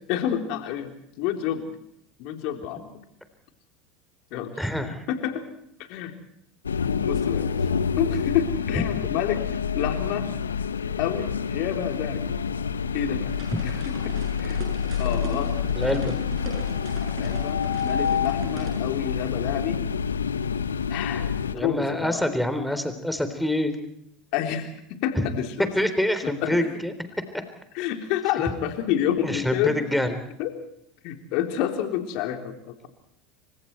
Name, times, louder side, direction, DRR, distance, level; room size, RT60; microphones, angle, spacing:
voice 1, 0.1-1.7 2.2-2.9 4.3-5.4 5.9-6.1 7.0-7.6 8.0-9.4 9.7-10.3 11.0-12.3 12.9-13.3 13.6-13.8 14.0-14.6 15.0-15.5 17.1-19.8 20.9-22.3 24.3-25.7 26.2-26.6 27.7-29.8 30.4-30.5 31.0-32.9, left 10 dB, 60° left, 5 dB, 3.6 m, -29 dB
voice 2, 4.6-5.0 15.8-16.2 21.5-23.8 25.1-25.2 25.8-26.9 29.2-30.2, left 1 dB, ahead, 9 dB, 3.7 m, -26 dB
sound 1, 6.6-21.5, left 6 dB, 85° left, 1.2 m, -27 dB
sound 2, 13.3-18.8, right 5 dB, 55° right, 8.0 m, -40 dB
30.0 x 25.0 x 4.6 m, 0.74 s
hypercardioid pair, 75°, 0 cm